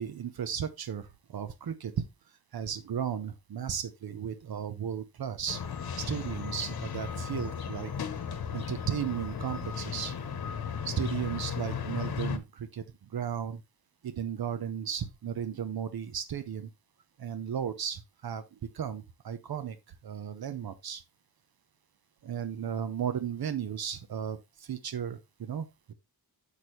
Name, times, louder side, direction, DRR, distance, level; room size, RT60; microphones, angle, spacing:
voice 1, 0.0-5.6 6.0-7.9 8.5-10.2 10.8-13.6 14.0-16.7 17.2-21.0 22.2-25.9, right 8 dB, 70° right, 0.8 m, -35 dB
sound 1, 5.5-12.4, left 6 dB, 70° left, 1.0 m, -35 dB
7.3 x 6.2 x 3.1 m
wide cardioid pair, 115°, 38 cm